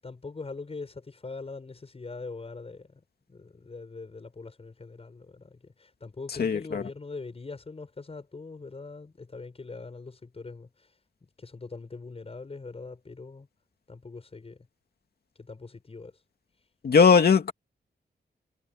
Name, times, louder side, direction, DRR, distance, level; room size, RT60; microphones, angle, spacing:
voice 1, 0.0-3.0 3.3-10.9 11.4-13.5 13.9-14.6 15.4-16.2, left 3 dB, 35° left, 7.2 m, -42 dB
voice 2, 6.4-6.8 16.8-17.5, left 5 dB, 60° left, 2.6 m, -19 dB
wide cardioid pair, 145°, 18 cm